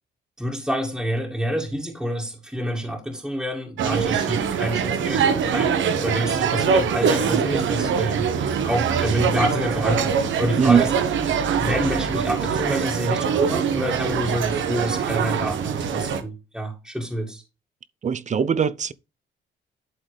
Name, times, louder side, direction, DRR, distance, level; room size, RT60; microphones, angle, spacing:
voice 1, 0.4-8.3 8.6-10.9 11.6-17.4, equal, 5° right, 2.2 m, -27 dB
sound 1, 3.8-16.2, right 7 dB, 70° right, 1.3 m, -23 dB
voice 2, 18.0-18.9, right 7 dB, 35° right, 0.6 m, -20 dB
11.5 x 4.0 x 3.4 m
cardioid pair, 90°, 20 cm